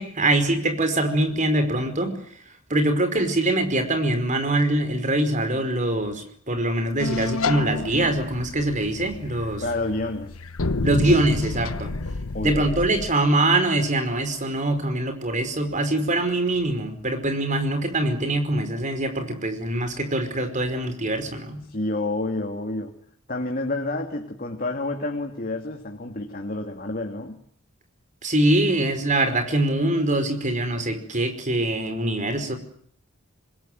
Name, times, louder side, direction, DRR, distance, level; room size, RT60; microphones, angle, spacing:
voice 1, 0.0-2.1 2.7-9.6 10.8-11.9 12.4-21.6 28.2-32.5, right 1 dB, 35° right, 8 dB, 5.0 m, -23 dB
sound 1, 7.0-13.1, left 3 dB, 80° left, 1.1 m, -30 dB
voice 2, 9.6-10.4 12.3-12.8 21.7-22.9 23.3-27.4, left 2 dB, 45° left, 3 dB, 2.7 m, -29 dB
26.5 x 21.0 x 9.4 m, 0.63 s
head